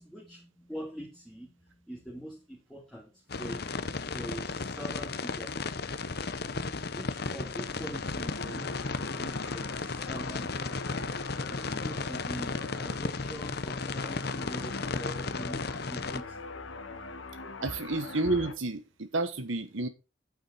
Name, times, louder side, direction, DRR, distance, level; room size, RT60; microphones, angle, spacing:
voice 1, 0.0-5.5 6.9-16.5, equal, 5° left, 1.8 m, -44 dB
sound 1, 3.3-16.2, left 4 dB, 50° left, 0.7 m, -35 dB
sound 2, 7.5-18.5, left 3 dB, 75° left, 1.5 m, -42 dB
voice 2, 17.6-19.9, right 2 dB, 80° right, 1.3 m, -30 dB
9.1 x 8.8 x 4.1 m
head